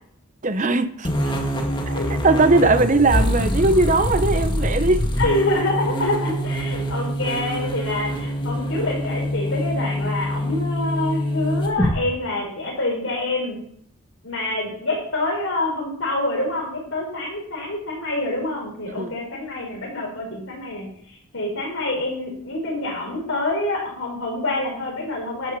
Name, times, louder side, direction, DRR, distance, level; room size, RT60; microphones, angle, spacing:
voice 1, 0.4-1.1 1.9-5.1 19.0-19.1, right 2 dB, 35° right, 0.8 m, -19 dB
sound 1, 1.0-11.9, equal, 20° left, 1.8 m, -24 dB
voice 2, 5.2-13.5 14.2-25.5, left 2 dB, 75° left, 4.6 m, -26 dB
11.5 x 7.1 x 6.8 m
head